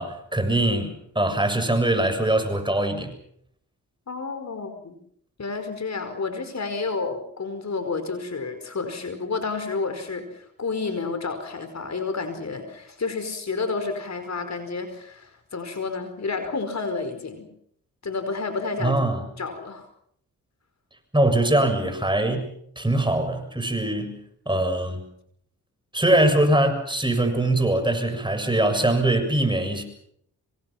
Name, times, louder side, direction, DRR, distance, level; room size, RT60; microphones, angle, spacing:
voice 1, 0.0-3.2 18.8-19.2 21.1-24.2 24.5-25.0 25.9-29.8, right 1 dB, 15° right, 7 dB, 7.0 m, -22 dB
voice 2, 4.1-5.0 5.4-17.5 18.0-19.0 19.4-19.9, left 4 dB, 45° left, 8 dB, 5.1 m, -30 dB
26.5 x 25.5 x 5.9 m, 0.70 s
supercardioid pair, 50°, 36 cm